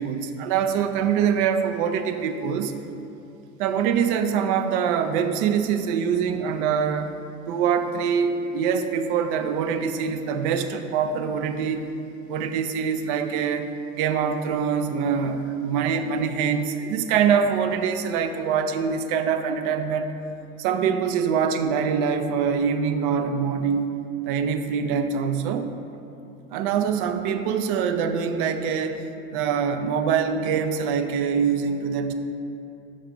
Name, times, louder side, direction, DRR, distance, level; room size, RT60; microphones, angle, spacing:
voice 1, 0.0-2.7 3.6-7.2 7.5-11.9 12.3-13.7 13.9-20.1 20.6-23.9 24.3-25.7 26.5-29.0 29.3-32.1, right 7 dB, 40° right, 8 dB, 0.5 m, -24 dB
6.3 x 3.6 x 5.1 m, 2.9 s
figure-of-eight pair, 80°, 43 cm